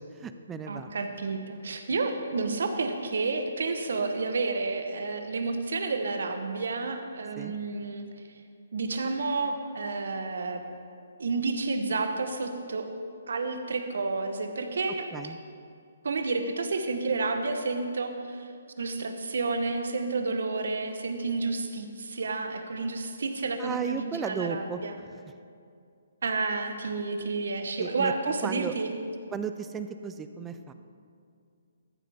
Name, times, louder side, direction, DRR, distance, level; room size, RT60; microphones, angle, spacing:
voice 1, 0.1-0.9 7.4-7.6 15.1-15.4 23.6-24.8 27.8-28.1 28.4-28.7 29.3-30.7, right 6 dB, 10° right, 9 dB, 0.3 m, -34 dB
voice 2, 0.7-8.1 8.7-10.6 11.2-12.9 13.3-15.1 16.0-18.5 18.8-24.9 26.2-28.9, right 3 dB, 75° right, 7 dB, 0.9 m, -30 dB
13.5 x 7.6 x 3.5 m, 2.4 s
hypercardioid pair, 155°, 0 cm